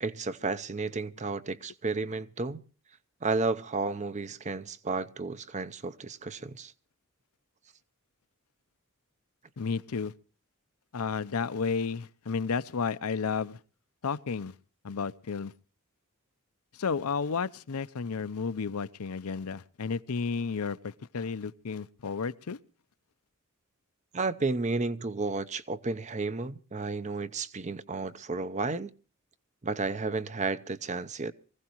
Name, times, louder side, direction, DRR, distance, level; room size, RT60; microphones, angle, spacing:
voice 1, 0.0-2.6 3.2-6.7 24.1-28.9 29.6-31.3, right 3 dB, 30° right, 0.6 m, -32 dB
voice 2, 9.6-10.1 10.9-13.6 14.0-14.5 14.8-15.5 16.7-22.6, left 5 dB, 80° left, 0.6 m, -32 dB
24.0 x 15.5 x 3.0 m
head